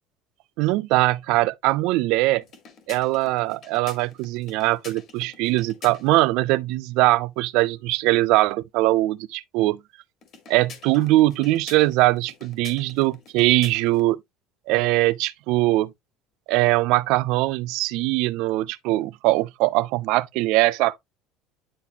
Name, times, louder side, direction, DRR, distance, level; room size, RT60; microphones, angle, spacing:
voice 1, 0.6-2.4 2.9-9.8 10.5-14.2 14.7-15.9 16.5-21.0, right 19 dB, 70° right, 0.5 m, -21 dB
sound 1, 2.4-6.3 10.2-14.1, left 6 dB, 45° left, 2.0 m, -47 dB
9.9 x 4.0 x 2.9 m
cardioid pair, 130°, 0 cm